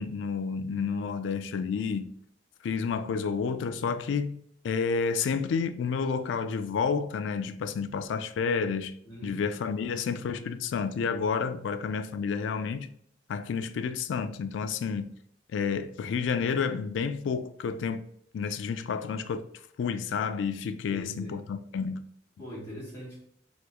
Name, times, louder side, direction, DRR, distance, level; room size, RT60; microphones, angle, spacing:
voice 1, 0.0-2.2 2.6-12.9 13.3-15.2 15.5-18.1 18.3-19.5 19.8-22.1, left 5 dB, 75° left, 0.3 m, -30 dB
voice 2, 9.1-9.4 10.3-10.4 20.9-21.5 22.4-23.2, equal, 10° left, 0.8 m, -41 dB
2.9 x 2.3 x 3.4 m
head